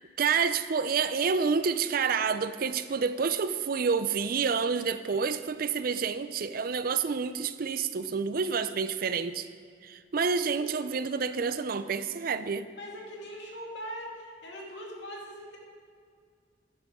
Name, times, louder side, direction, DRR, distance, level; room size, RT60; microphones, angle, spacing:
voice 1, 0.2-9.5 9.8-12.7, right 5 dB, 50° right, 12 dB, 0.5 m, -28 dB
voice 2, 12.7-15.6, equal, 70° left, -2 dB, 2.5 m, -41 dB
12.0 x 9.8 x 3.6 m, 2.2 s
head